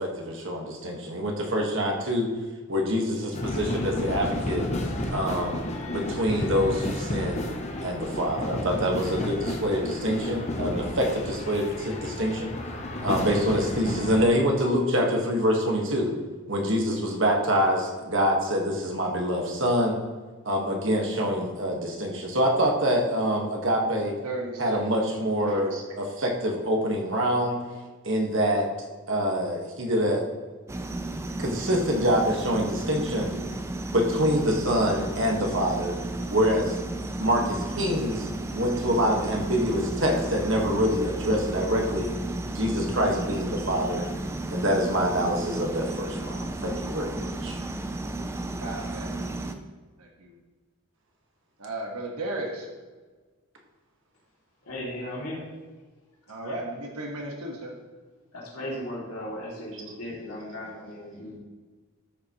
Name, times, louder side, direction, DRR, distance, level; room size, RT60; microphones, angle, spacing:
voice 1, 0.0-2.3 2.7-4.7 5.1-7.4 7.8-12.5 13.0-16.1 16.5-20.0 20.4-24.1 24.6-27.6 28.0-28.7 29.1-30.2 31.4-33.3 33.9-35.9 36.3-36.8 37.2-42.1 42.5-44.0 44.5-47.6, equal, 55° right, 0 dB, 1.5 m, -25 dB
sound 1, 3.3-14.3, left 1 dB, 30° left, 0.8 m, -32 dB
voice 2, 24.2-24.9 48.6-49.6 50.0-50.3 51.6-52.7 56.3-57.7, right 2 dB, 90° right, 0 dB, 1.5 m, -35 dB
sound 2, 30.7-49.5, right 2 dB, 10° right, 0.3 m, -33 dB
voice 3, 54.7-55.4 56.4-56.6 58.3-61.4, left 1 dB, 80° left, -5 dB, 2.6 m, -36 dB
13.5 x 7.0 x 3.0 m, 1.4 s
head